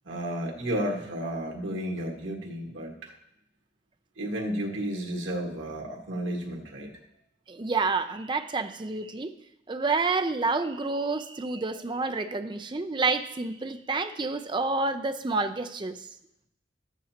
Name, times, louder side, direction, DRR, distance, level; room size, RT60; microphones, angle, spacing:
voice 1, 0.1-3.1 4.2-6.9, equal, 90° right, -1 dB, 1.8 m, -32 dB
voice 2, 7.5-9.3 9.7-16.0, right 3 dB, 25° right, 9 dB, 0.5 m, -29 dB
13.0 x 9.2 x 2.9 m, 0.80 s
head